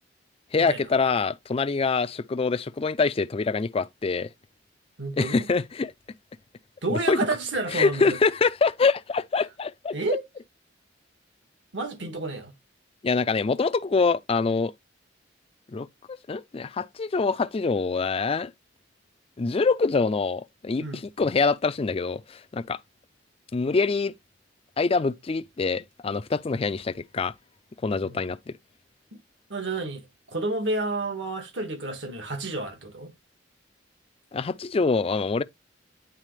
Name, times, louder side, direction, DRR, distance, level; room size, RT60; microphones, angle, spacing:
voice 1, 0.5-4.3 5.2-5.9 6.9-7.2 7.7-9.9 13.0-14.7 15.7-15.9 16.3-18.5 19.4-22.8 23.5-24.1 24.8-27.3 27.8-28.6 34.3-35.4, left 4 dB, 30° left, 0.4 m, -25 dB
voice 2, 5.0-5.4 6.8-8.2 9.9-10.2 11.7-12.5 20.8-21.0 28.0-28.2 29.5-33.1, right 2 dB, 70° right, 1.7 m, -30 dB
9.1 x 3.9 x 3.2 m
head